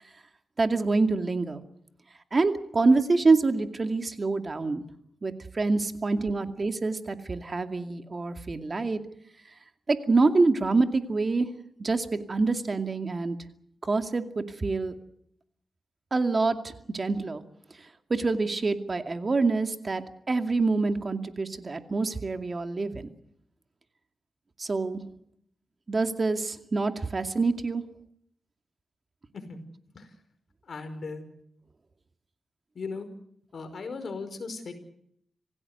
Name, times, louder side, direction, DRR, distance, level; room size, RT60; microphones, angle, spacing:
voice 1, 0.6-1.6 2.3-4.8 5.2-9.0 9.9-11.5 11.8-13.4 13.8-14.9 16.1-17.4 18.1-23.1 24.6-25.0 25.9-27.8, right 3 dB, 40° right, 7 dB, 2.3 m, -26 dB
voice 2, 30.7-31.2 32.7-33.1 33.5-34.7, left 4 dB, 60° left, 8 dB, 5.1 m, -37 dB
26.5 x 17.0 x 8.0 m, 0.72 s
cardioid pair, 80°, 0 cm